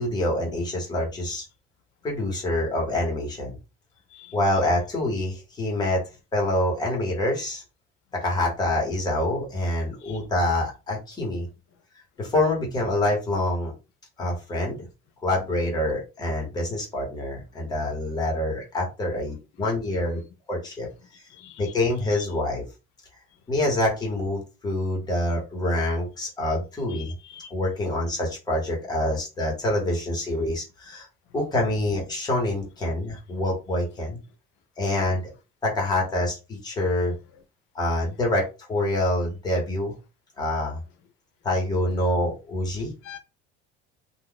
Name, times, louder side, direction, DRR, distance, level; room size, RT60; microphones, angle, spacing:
voice 1, 0.0-1.4 2.0-3.5 4.3-6.0 6.3-7.6 8.1-11.4 12.2-13.7 14.2-14.9 15.2-20.2 20.5-20.9 21.6-22.6 23.5-27.1 27.5-31.1 31.3-34.2 34.8-35.2 35.6-37.1 37.7-39.9 40.4-40.8 41.4-42.9, left 1 dB, 20° left, 1.3 m, -26 dB
voice 2, 21.3-21.7 22.2-22.3 26.9-27.5 43.0-43.2, left 10 dB, 70° left, 0.7 m, -44 dB
2.5 x 2.4 x 3.8 m
cardioid pair, 155°, 20 cm